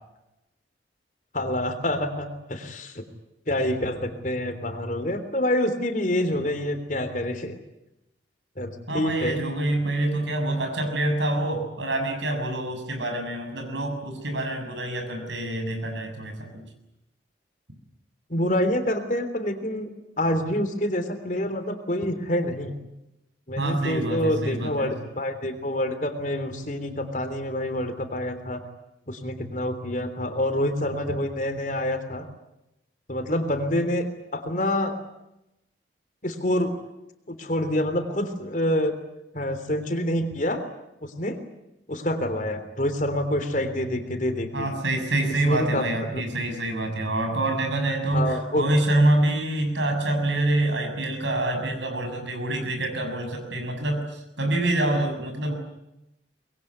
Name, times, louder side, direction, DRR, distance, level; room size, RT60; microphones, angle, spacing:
voice 1, 1.3-3.0 3.5-7.5 8.6-9.4 18.3-19.9 20.2-22.7 23.5-28.6 29.1-32.2 33.1-34.1 34.3-35.0 36.2-36.8 37.3-38.9 39.3-40.7 41.0-41.4 41.9-44.7 45.4-46.2 48.1-48.6, left 1 dB, 45° left, 7 dB, 3.3 m, -27 dB
voice 2, 8.9-16.6 23.6-24.9 44.5-55.5, right 1 dB, 80° right, 5 dB, 7.0 m, -26 dB
24.5 x 22.0 x 9.7 m, 0.89 s
head